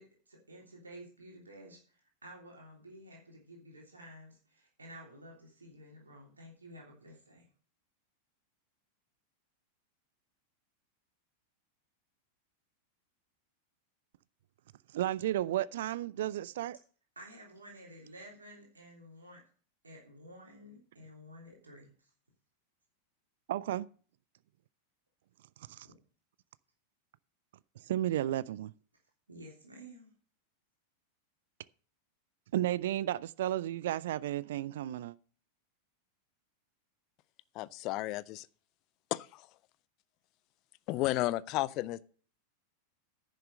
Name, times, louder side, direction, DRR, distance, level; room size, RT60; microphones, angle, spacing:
voice 1, 0.0-7.5 17.1-19.4 19.8-22.1 29.3-30.1, equal, 75° right, 3.2 m, -52 dB
voice 2, 14.9-16.8 23.5-23.9 25.7-25.9 27.9-28.7 32.5-35.1, right 13 dB, 55° right, 0.4 m, -33 dB
voice 3, 37.5-38.5 39.1-39.5 40.9-42.0, left 17 dB, 40° left, 0.5 m, -33 dB
10.5 x 6.5 x 6.5 m
figure-of-eight pair, 90°, 0 cm